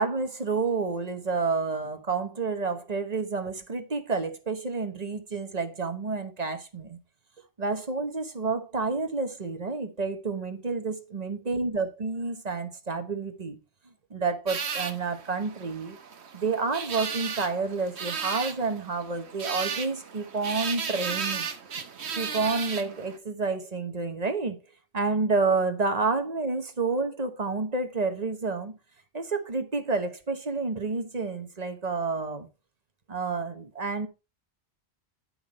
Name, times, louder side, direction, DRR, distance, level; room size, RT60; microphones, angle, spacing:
voice 1, 0.0-7.0 7.6-13.6 14.1-16.0 16.3-21.5 22.2-24.6 24.9-28.8 29.1-32.5 33.1-34.1, right 4 dB, 40° right, 1.2 m, -29 dB
sound 1, 14.5-23.2, right 6 dB, 85° right, 1.3 m, -35 dB
9.8 x 5.9 x 4.1 m
omnidirectional pair, 1.1 m